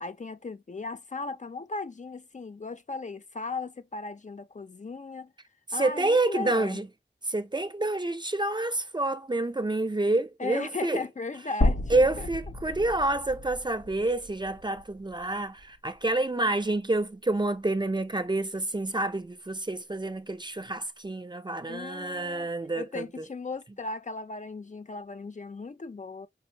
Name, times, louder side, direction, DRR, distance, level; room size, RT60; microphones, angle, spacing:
voice 1, 0.0-5.3 5.7-6.8 10.4-12.3 21.7-22.5 22.8-26.3, left 3 dB, 40° left, 0.5 m, -37 dB
voice 2, 5.7-6.9 7.3-11.0 11.9-23.2, right 2 dB, 25° right, 0.5 m, -28 dB
sound 1, 11.6-15.8 16.1-16.2 17.6-17.7, left 1 dB, 75° left, 1.3 m, -32 dB
5.2 x 2.5 x 2.8 m
cardioid pair, 45°, 20 cm